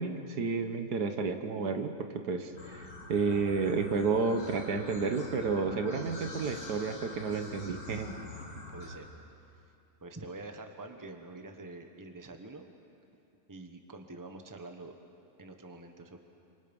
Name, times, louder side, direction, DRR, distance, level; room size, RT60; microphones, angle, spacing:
voice 1, 0.0-1.9 2.3-8.1, right 4 dB, 70° right, 6 dB, 1.8 m, -31 dB
sound 1, 2.6-9.0, left 2 dB, 85° left, 3.3 m, -45 dB
voice 2, 8.5-9.1 10.0-12.7 13.5-14.9 15.4-16.2, right 2 dB, 15° right, 5 dB, 1.2 m, -46 dB
29.5 x 25.5 x 5.4 m, 2.6 s
omnidirectional pair, 1.8 m